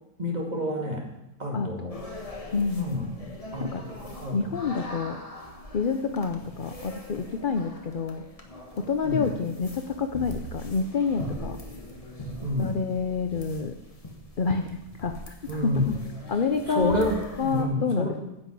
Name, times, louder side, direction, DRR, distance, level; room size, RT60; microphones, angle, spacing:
voice 1, 0.2-1.1 1.4-2.0 2.8-3.1 3.5-3.9 4.2-4.5 9.0-9.3 12.4-12.8 15.5-16.0 16.7-18.2, left 1 dB, 30° right, -1 dB, 2.3 m, -29 dB
sound 1, 1.9-17.6, left 1 dB, 25° left, 1.3 m, -42 dB
voice 2, 2.5-2.9 3.6-3.8 4.3-5.2 5.7-8.2 8.8-11.6 12.6-13.7 14.4-15.8 16.3-17.1 17.4-18.2, left 5 dB, 50° left, 6 dB, 0.7 m, -28 dB
10.0 x 6.2 x 8.3 m, 0.92 s
omnidirectional pair, 1.6 m